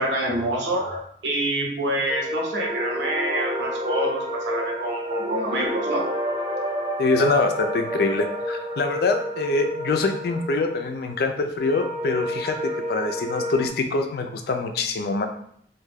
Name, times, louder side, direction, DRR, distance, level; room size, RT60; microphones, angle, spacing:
voice 1, 0.0-6.0, right 1 dB, 85° right, -1 dB, 0.8 m, -26 dB
sound 1, 2.1-13.7, equal, 30° right, 0.4 m, -30 dB
voice 2, 7.0-12.6 12.9-15.3, left 3 dB, 60° left, 5 dB, 0.3 m, -24 dB
2.3 x 2.2 x 3.3 m, 0.66 s
head